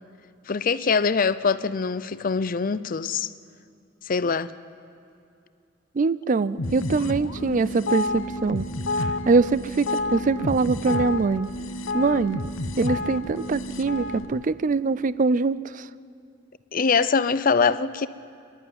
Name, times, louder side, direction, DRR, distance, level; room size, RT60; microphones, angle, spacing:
voice 1, 0.5-3.3 4.1-4.5 16.7-18.1, left 5 dB, 45° left, 16 dB, 0.5 m, -23 dB
voice 2, 6.0-8.7 9.2-9.9 10.1-11.5 11.9-12.4 12.8-15.9, right 4 dB, 40° right, 17 dB, 0.4 m, -23 dB
sound 1, 6.6-14.3, left 2 dB, 90° left, 1.0 m, -30 dB
29.0 x 11.5 x 9.5 m, 2.4 s
head